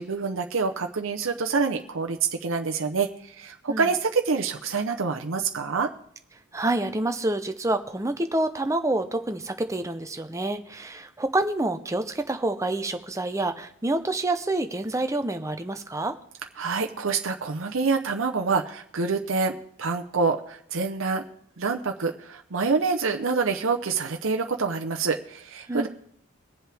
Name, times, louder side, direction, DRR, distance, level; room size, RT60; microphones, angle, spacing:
voice 1, 0.0-5.9 16.6-21.2 21.6-25.9, right 4 dB, 70° right, 3 dB, 0.8 m, -26 dB
voice 2, 6.5-16.1 25.7-25.9, right 2 dB, 15° right, 7 dB, 0.7 m, -27 dB
22.5 x 7.6 x 3.5 m, 0.67 s
head